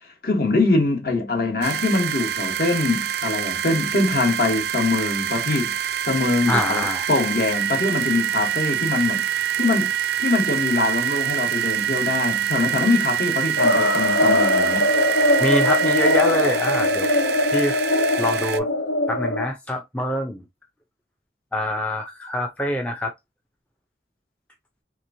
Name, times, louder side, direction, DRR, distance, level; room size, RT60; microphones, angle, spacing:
voice 1, 0.2-5.7 6.1-9.2 9.6-9.9 10.2-14.9, left 3 dB, 55° left, 1.1 m, -23 dB
sound 1, 1.6-18.6, right 10 dB, 65° right, 0.4 m, -26 dB
voice 2, 6.5-7.1 15.4-17.1 17.5-17.8 18.2-18.7 19.1-20.4 21.5-23.1, left 1 dB, 5° left, 0.4 m, -25 dB
sound 2, 13.6-19.5, left 2 dB, 85° left, 0.5 m, -21 dB
3.3 x 2.9 x 2.6 m
head